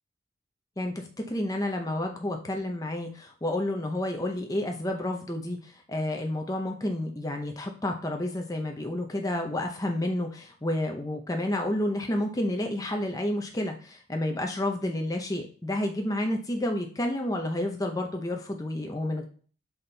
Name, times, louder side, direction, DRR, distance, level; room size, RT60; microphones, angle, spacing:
voice 1, 0.8-19.3, left 1 dB, 20° left, 3 dB, 0.6 m, -30 dB
7.0 x 4.2 x 3.3 m, 0.42 s
head